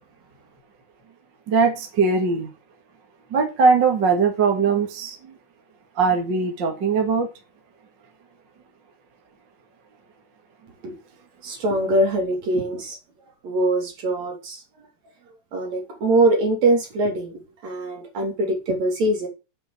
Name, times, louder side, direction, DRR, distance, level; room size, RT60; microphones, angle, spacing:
voice 1, 1.5-2.5 3.3-5.4 6.0-7.3, right 4 dB, 40° right, 2.1 m, -20 dB
voice 2, 11.4-13.0 13.4-14.6 15.5-19.3, right 1 dB, 55° right, 4.1 m, -23 dB
8.0 x 6.1 x 7.7 m
omnidirectional pair, 3.8 m